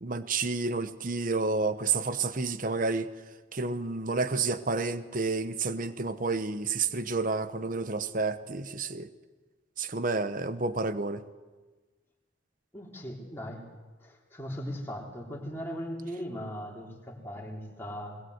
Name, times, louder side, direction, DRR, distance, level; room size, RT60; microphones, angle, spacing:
voice 1, 0.0-3.1 3.5-9.1 9.8-11.2, right 3 dB, 45° right, 12 dB, 1.0 m, -30 dB
voice 2, 12.7-13.7 14.0-18.2, equal, 10° left, -2 dB, 3.5 m, -39 dB
20.5 x 20.5 x 8.0 m, 1.3 s
head